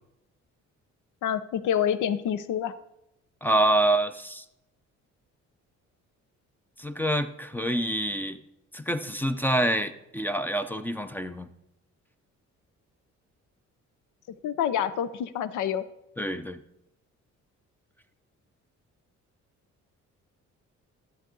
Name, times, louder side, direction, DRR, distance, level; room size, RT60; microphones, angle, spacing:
voice 1, 1.2-2.8 14.4-15.9, left 9 dB, 80° left, 14 dB, 0.7 m, -27 dB
voice 2, 3.4-4.4 6.8-8.4 8.7-11.5 16.2-16.6, right 1 dB, 5° left, 10 dB, 0.5 m, -26 dB
12.0 x 8.0 x 3.8 m, 0.84 s
cardioid pair, 90°, 30 cm